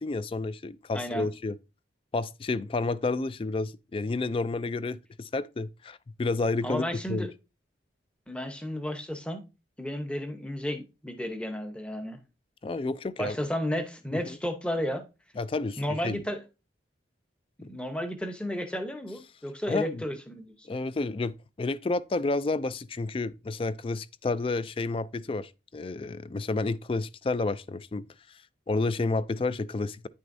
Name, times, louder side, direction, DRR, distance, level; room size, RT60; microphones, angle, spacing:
voice 1, 0.0-1.6 2.1-7.3 12.6-13.4 14.1-14.4 15.4-16.2 17.6-17.7 19.7-20.0 20.6-28.0 28.7-30.1, left 3 dB, 30° left, 0.3 m, -30 dB
voice 2, 0.9-1.3 6.6-7.3 8.3-9.4 9.8-12.2 13.2-15.0 15.8-16.4 17.6-20.7, equal, 5° left, 0.9 m, -33 dB
9.5 x 6.3 x 2.6 m
head